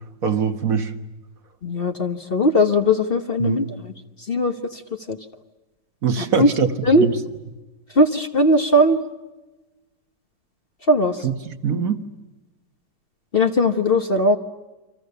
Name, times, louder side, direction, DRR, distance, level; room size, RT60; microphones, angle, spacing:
voice 1, 0.2-0.9 3.4-3.6 6.0-6.7 7.0-7.2 11.2-12.0, right 6 dB, 55° right, 7 dB, 1.7 m, -22 dB
voice 2, 1.6-3.9 4.3-4.8 5.1-5.2 6.2-6.5 6.8-7.1 7.9-9.0 10.9-11.2 13.3-14.4, left 1 dB, 35° left, 6 dB, 1.3 m, -19 dB
29.0 x 25.5 x 6.8 m, 1.1 s
omnidirectional pair, 1.9 m